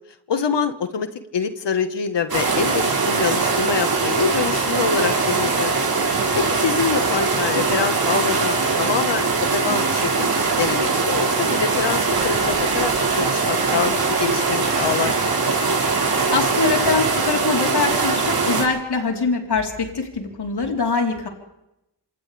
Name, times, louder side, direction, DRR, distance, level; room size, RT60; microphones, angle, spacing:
voice 1, 0.3-1.1 1.3-5.8 6.3-10.3 10.6-15.1, left 6 dB, 85° left, 8 dB, 1.7 m, -25 dB
sound 1, 2.3-18.6, right 4 dB, 55° right, 5.8 m, -21 dB
voice 2, 16.3-21.3, left 4 dB, 70° left, 1 dB, 4.3 m, -23 dB
27.5 x 26.5 x 3.5 m, 0.88 s
wide cardioid pair, 85°, 41 cm